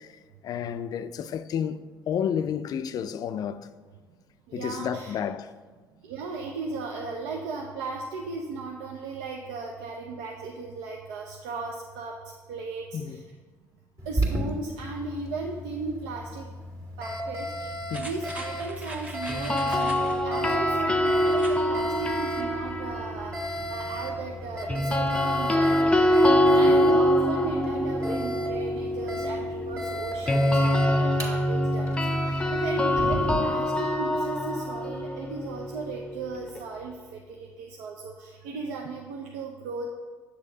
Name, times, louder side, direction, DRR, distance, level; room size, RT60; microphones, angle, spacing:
voice 1, 0.0-3.7 4.5-5.5 12.9-13.2 17.9-18.1 26.6-27.0, left 8 dB, 55° left, 0.3 m, -31 dB
voice 2, 4.5-5.1 6.0-12.2 12.5-13.2 14.1-16.5 17.0-17.7 18.0-26.0 26.5-39.9, right 4 dB, 75° right, 0.5 m, -36 dB
Alarm, 14.0-33.4, equal, 45° right, 1.7 m, -35 dB
sound 1, 17.9-20.2 21.3-21.6 22.0-22.1, right 1 dB, 20° right, 1.3 m, -42 dB
sound 2, 19.3-23.5 24.7-36.6, equal, 10° left, 0.7 m, -24 dB
7.9 x 6.2 x 2.7 m
hypercardioid pair, 55°, 8 cm